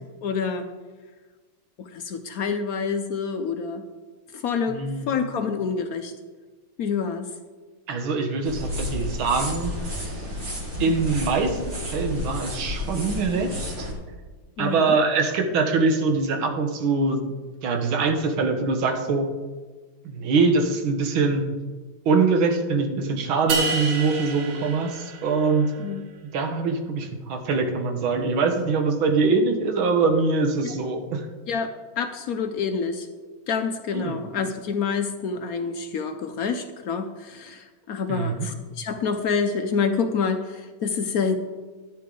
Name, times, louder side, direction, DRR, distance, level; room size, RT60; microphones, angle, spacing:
voice 1, 0.2-0.7 1.8-3.8 4.3-6.1 6.8-7.3 14.6-15.0 25.8-26.0 31.5-33.1 33.5-41.4, left 5 dB, 70° left, 7 dB, 0.8 m, -27 dB
voice 2, 4.7-5.1 7.9-9.7 10.0-10.2 10.8-11.6 11.9-13.9 14.6-17.2 17.6-19.3 20.0-21.4 22.1-25.7 26.3-31.3 33.9-34.2 38.1-38.5, right 4 dB, 80° right, 5 dB, 1.9 m, -23 dB
sound 1, 8.4-13.9, left 1 dB, 35° right, 2.5 m, -31 dB
sound 2, 23.5-25.8, right 4 dB, 50° right, 1.2 m, -29 dB
13.0 x 9.5 x 3.8 m, 1.4 s
omnidirectional pair, 2.2 m